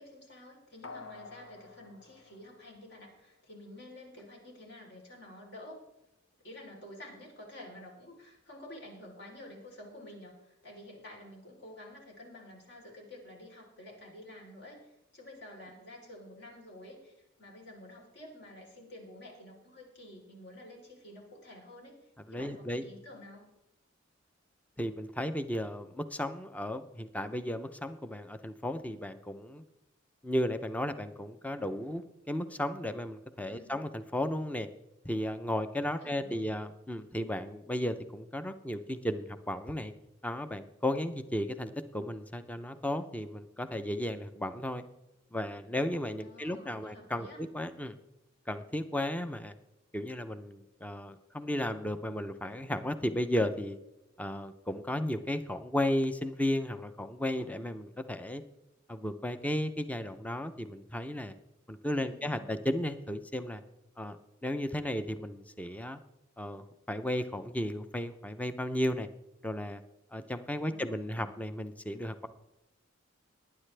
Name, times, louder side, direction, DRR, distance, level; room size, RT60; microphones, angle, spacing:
voice 1, 0.0-5.8 6.4-23.5 33.4-33.8 36.0-36.5 46.2-47.4 61.9-62.6 70.6-71.4, left 1 dB, 55° left, -1 dB, 3.7 m, -50 dB
sound 1, 0.8-3.4 3.8-3.9, left 4 dB, 85° left, 1.0 m, -50 dB
voice 2, 22.3-22.8 24.8-29.6 30.2-34.7 35.0-39.9 40.2-44.8 45.3-48.0 48.5-49.5 49.9-53.8 54.2-58.4 58.9-61.3 61.7-63.6 64.0-64.2 64.4-66.0 66.4-69.1 69.4-69.8 70.1-72.3, left 1 dB, 5° left, 10 dB, 0.5 m, -34 dB
19.0 x 9.8 x 3.3 m, 0.90 s
head